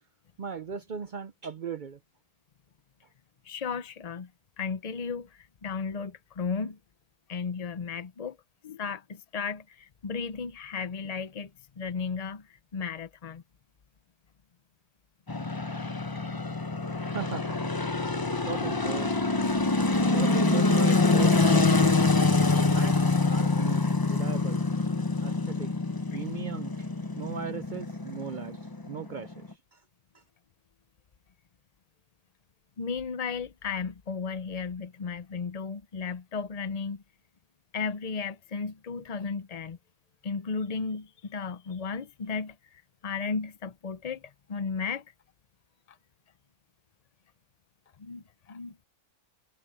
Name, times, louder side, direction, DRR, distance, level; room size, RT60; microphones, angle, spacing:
voice 1, 0.4-2.0 17.1-17.6 18.5-19.1 19.9-22.1 22.6-22.9 23.3-24.6 25.2-25.7 26.1-26.9 27.2-28.6 28.9-29.5, right 7 dB, 65° right, 0.4 m, -38 dB
voice 2, 3.4-4.3 4.6-6.8 7.3-8.4 8.6-11.5 11.8-13.4 16.2-16.4 26.1-26.2 32.8-37.0 37.7-39.8 40.2-45.0 48.0-48.7, left 5 dB, 50° left, 0.4 m, -34 dB
sound 1, 15.3-29.5, left 3 dB, 20° left, 0.8 m, -25 dB
omnidirectional pair, 1.6 m